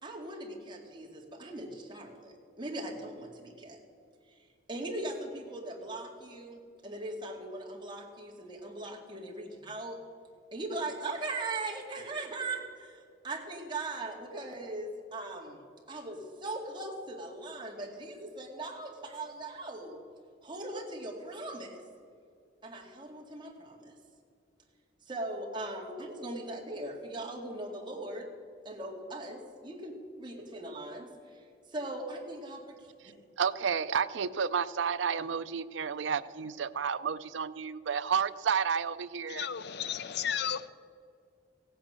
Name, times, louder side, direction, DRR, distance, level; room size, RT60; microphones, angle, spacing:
voice 1, 0.0-3.8 4.3-10.0 10.5-20.0 20.4-21.8 22.6-23.9 25.0-28.3 28.6-32.9, right 2 dB, 25° right, 0 dB, 2.0 m, -40 dB
voice 2, 33.4-39.5, right 6 dB, 75° right, 13 dB, 0.5 m, -31 dB
voice 3, 39.3-40.7, left 8 dB, 60° left, 14 dB, 0.6 m, -34 dB
16.0 x 8.9 x 6.4 m, 2.3 s
head